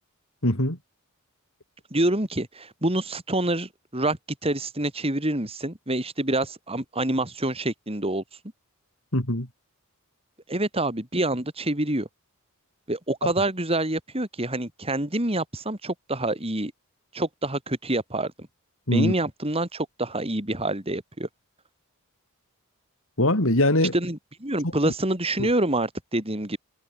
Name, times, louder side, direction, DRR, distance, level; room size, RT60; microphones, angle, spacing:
voice 1, 0.4-0.8 9.1-9.5 13.2-13.3 18.9-19.1 23.2-23.9 24.8-24.9 25.4-25.5, left 1 dB, 60° left, 4.8 m, -22 dB
voice 2, 1.9-8.2 10.5-12.1 12.9-16.7 17.1-18.5 18.9-21.3 23.9-26.6, right 1 dB, 25° right, 4.2 m, -27 dB
head